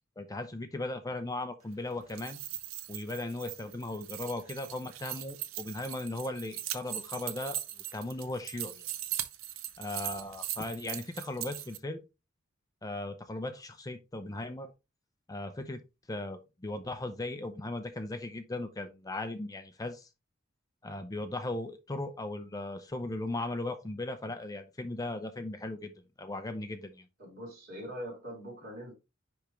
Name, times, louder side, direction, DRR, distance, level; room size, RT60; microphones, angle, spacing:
voice 1, 0.2-2.4 2.9-7.6 7.9-8.9 9.8-12.0 12.8-14.7 15.3-15.8 16.1-20.1 20.8-25.9 26.2-27.0, left 2 dB, 20° left, 0.6 m, -37 dB
sound 1, 2.0-11.8, right 12 dB, 85° right, 0.7 m, -40 dB
voice 2, 27.2-28.9, equal, 45° right, 3.6 m, -42 dB
10.0 x 3.5 x 3.1 m
head